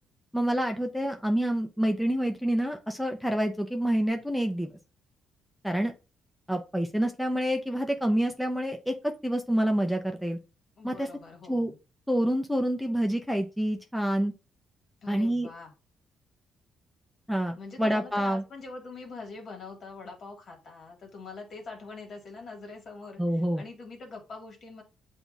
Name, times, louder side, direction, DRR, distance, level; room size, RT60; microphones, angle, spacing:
voice 1, 0.3-4.7 5.6-5.9 6.5-10.4 10.8-11.1 11.5-11.7 12.1-14.3 15.1-15.5 17.3-18.4 23.2-23.6, equal, ahead, 3 dB, 0.5 m, -27 dB
voice 2, 10.8-11.8 15.0-15.7 17.6-24.8, left 3 dB, 50° left, 2 dB, 1.6 m, -44 dB
7.9 x 2.6 x 2.4 m, 0.30 s
cardioid pair, 90°, 0 cm